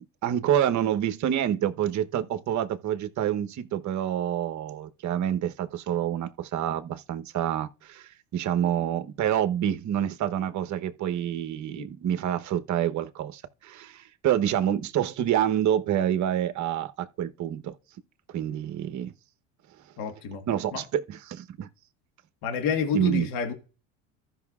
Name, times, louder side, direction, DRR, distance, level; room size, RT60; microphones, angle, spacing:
voice 1, 0.2-17.7 18.3-19.1 20.5-21.7 22.9-23.3, right 10 dB, 45° right, 1.0 m, -27 dB
voice 2, 20.0-20.4 20.7-20.8 22.4-23.5, left 6 dB, 70° left, 1.6 m, -28 dB
15.0 x 5.7 x 2.4 m
supercardioid pair, 85°, 39 cm